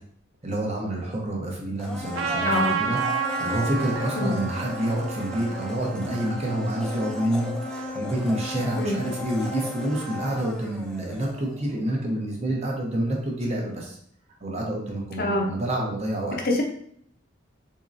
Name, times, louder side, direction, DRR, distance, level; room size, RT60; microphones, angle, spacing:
voice 1, 0.4-14.0 14.4-16.4, right 1 dB, 35° right, -1 dB, 0.8 m, -28 dB
Domestic sounds home sounds, 1.8-11.7 12.0-12.1, left 2 dB, 5° left, 0.4 m, -36 dB
Trumpet, 2.1-6.8, right 6 dB, 80° right, 0.5 m, -30 dB
voice 2, 2.5-2.8 4.2-4.4 8.8-9.0 15.2-15.5 16.4-16.6, left 2 dB, 50° left, 1 dB, 0.6 m, -24 dB
3.7 x 3.0 x 2.6 m, 0.64 s
head